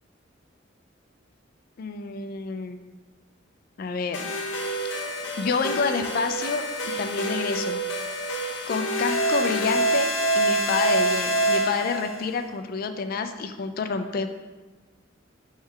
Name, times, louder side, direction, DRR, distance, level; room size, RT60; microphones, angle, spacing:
voice 1, 1.8-2.8 3.8-4.3 5.4-7.8 8.7-14.3, left 4 dB, 50° left, 8 dB, 0.3 m, -28 dB
sound 1, 4.1-12.2, right 1 dB, 70° left, 0.8 m, -26 dB
3.6 x 3.2 x 4.6 m, 1.2 s
head